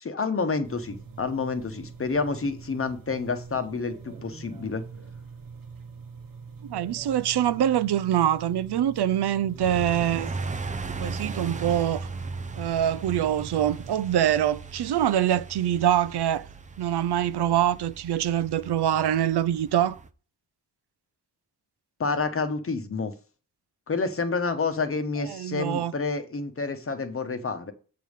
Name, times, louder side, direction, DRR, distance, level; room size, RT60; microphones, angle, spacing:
voice 1, 0.0-4.8 22.0-23.1 23.9-27.7, left 4 dB, 35° left, 1.0 m, -29 dB
sound 1, 0.6-13.9, right 5 dB, 55° right, 1.1 m, -44 dB
voice 2, 6.6-10.3 10.8-12.1 12.5-16.5 16.8-20.0 25.3-25.9, right 11 dB, 75° right, 0.6 m, -24 dB
sound 2, 9.6-20.1, right 4 dB, 20° right, 0.4 m, -37 dB
7.6 x 3.6 x 6.4 m
wide cardioid pair, 125°, 40 cm